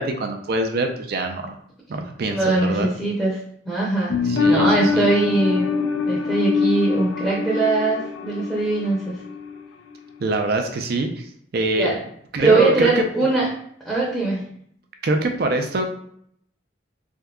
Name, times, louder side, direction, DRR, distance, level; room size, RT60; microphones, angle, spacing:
voice 1, 0.0-1.5 1.9-2.9 4.3-5.1 10.2-11.3 11.5-11.9 12.3-13.0 15.0-15.9, right 2 dB, 55° right, 5 dB, 0.4 m, -24 dB
voice 2, 2.3-3.4 3.6-4.1 4.5-5.7 6.0-9.1 11.8-12.0 12.4-13.5 13.8-14.4, right 3 dB, 5° right, -7 dB, 0.6 m, -21 dB
sound 1, 4.1-9.6 9.9-10.0, left 4 dB, 90° left, 0.3 m, -24 dB
3.6 x 2.7 x 2.3 m, 0.67 s
head